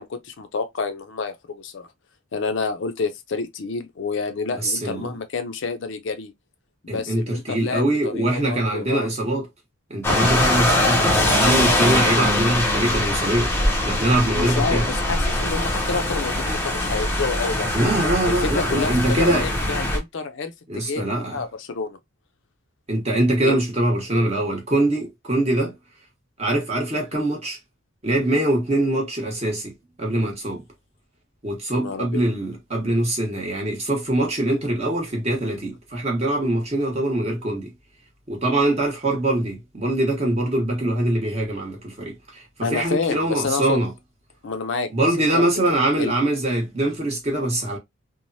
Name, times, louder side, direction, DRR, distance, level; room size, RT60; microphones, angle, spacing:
voice 1, 0.0-1.9 2.3-6.3 6.8-9.1 14.3-17.7 18.3-20.5 20.9-22.0 23.4-23.6 31.7-32.2 42.6-43.8 44.4-46.1, left 4 dB, 60° left, 0.4 m, -29 dB
voice 2, 4.6-5.1 6.9-9.5 9.9-13.5 13.8-14.9 17.7-19.5 20.7-21.4 22.9-25.7 26.4-27.6 28.0-29.7 30.0-30.6 31.4-37.7 38.3-43.9 44.9-47.8, right 1 dB, 30° right, 1.0 m, -23 dB
sound 1, 10.0-20.0, left 1 dB, 10° left, 0.5 m, -22 dB
3.1 x 2.0 x 2.6 m
head